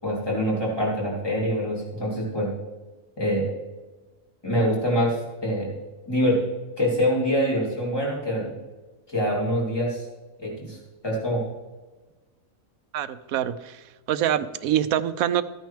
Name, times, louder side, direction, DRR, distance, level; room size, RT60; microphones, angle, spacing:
voice 1, 0.0-2.5 3.2-3.5 4.4-5.2 5.4-5.7 6.1-6.4 6.8-8.5 9.1-10.1 10.4-10.8 11.0-11.4, equal, 15° left, -4 dB, 3.1 m, -25 dB
voice 2, 12.9-13.8 14.1-15.4, right 10 dB, 85° right, 13 dB, 1.1 m, -25 dB
14.5 x 9.3 x 3.3 m, 1.2 s
omnidirectional pair, 1.5 m